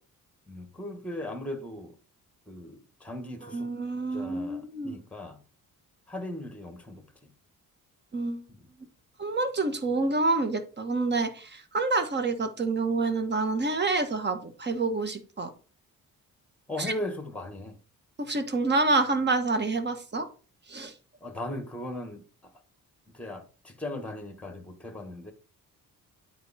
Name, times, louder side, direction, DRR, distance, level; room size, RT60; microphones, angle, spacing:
voice 1, 0.5-2.0 2.5-3.7 4.1-5.4 6.1-7.3 8.5-8.7 16.7-17.8 21.2-22.5 23.1-25.3, left 1 dB, 5° left, 1.4 m, -38 dB
voice 2, 3.5-5.0 8.1-8.4 9.2-15.5 16.8-16.9 18.2-20.3 20.7-20.9, right 3 dB, 30° right, 1.3 m, -27 dB
9.4 x 4.4 x 4.2 m
cardioid pair, 115°, 35 cm